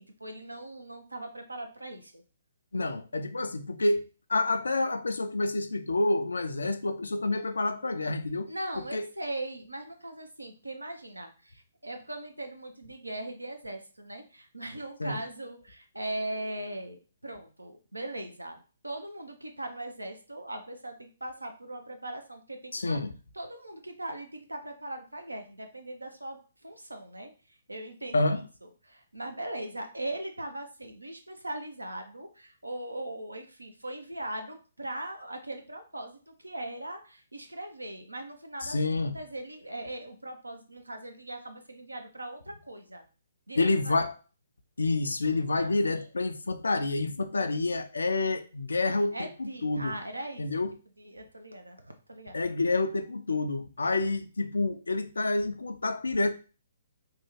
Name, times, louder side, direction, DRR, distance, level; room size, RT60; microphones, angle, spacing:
voice 1, 0.0-2.2 7.4-7.5 8.5-23.0 23.3-26.4 26.6-28.5 28.9-43.1 43.5-43.9 45.5-45.7 49.1-50.4 51.0-52.5, right 1 dB, 80° right, 0.6 m, -40 dB
voice 2, 2.7-4.0 4.3-8.5 8.9-9.0 15.0-15.2 22.7-23.1 28.1-28.4 38.6-39.2 43.6-44.1 44.8-50.0 50.4-50.8 52.3-56.3, left 2 dB, 70° left, 0.3 m, -28 dB
3.4 x 2.2 x 3.1 m
figure-of-eight pair, 130°, 0 cm